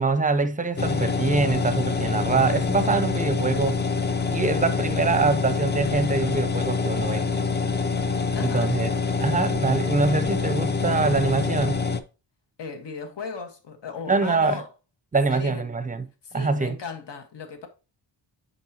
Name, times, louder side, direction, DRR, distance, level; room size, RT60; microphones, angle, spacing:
voice 1, 0.0-3.8 4.3-7.3 8.4-8.9 9.2-11.8 14.1-14.6 15.1-16.1 16.3-16.8, right 4 dB, 20° right, 0.6 m, -24 dB
sound 1, 0.8-12.0, left 4 dB, 25° left, 0.5 m, -25 dB
voice 2, 8.3-8.8 12.6-14.7 15.3-15.6 16.2-17.7, left 6 dB, 70° left, 1.6 m, -36 dB
9.4 x 5.4 x 2.9 m
wide cardioid pair, 150°, 43 cm